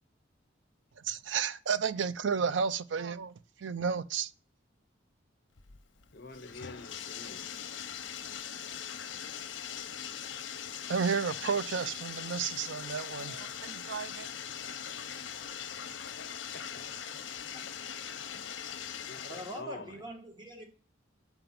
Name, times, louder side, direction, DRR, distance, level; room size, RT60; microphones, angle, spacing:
voice 1, 1.0-4.3 10.9-14.3, right 6 dB, 75° right, 0.5 m, -32 dB
Bathtub (filling or washing), 5.6-19.6, left 8 dB, 80° left, 0.8 m, -41 dB
voice 2, 6.1-7.4 16.5-16.8 17.1-17.2 19.1-19.9, left 2 dB, 55° left, 1.0 m, -46 dB
voice 3, 19.2-20.7, equal, 25° right, 1.6 m, -43 dB
5.8 x 5.3 x 5.9 m
head